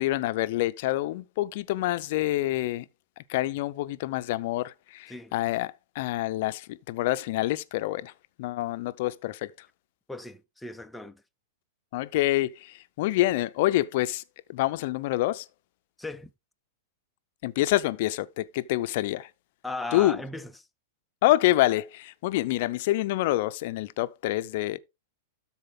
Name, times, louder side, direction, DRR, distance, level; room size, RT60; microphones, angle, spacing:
voice 1, 0.0-2.8 3.3-8.1 8.4-9.5 11.9-14.2 14.5-15.5 17.4-19.3 19.9-20.2 21.2-24.8, left 16 dB, 55° left, 0.6 m, -27 dB
voice 2, 10.1-11.2 16.0-16.3 19.6-20.5, left 2 dB, 5° left, 0.5 m, -37 dB
12.5 x 4.4 x 3.7 m
hypercardioid pair, 140°, 0 cm